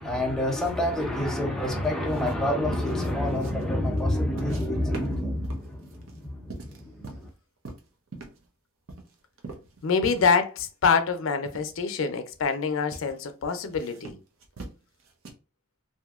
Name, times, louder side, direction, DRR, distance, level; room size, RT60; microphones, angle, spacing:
voice 1, 0.0-7.3, left 1 dB, 5° left, 0.5 m, -28 dB
sound 1, 0.6-4.7 4.9-7.3 7.6-8.5 8.9-10.4 10.7-10.8 11.4-11.7 12.3-12.6 12.9-13.2 13.7-15.3, right 3 dB, 85° right, 0.6 m, -43 dB
voice 2, 9.8-14.2, left 5 dB, 75° left, 0.5 m, -25 dB
2.8 x 2.6 x 2.3 m
head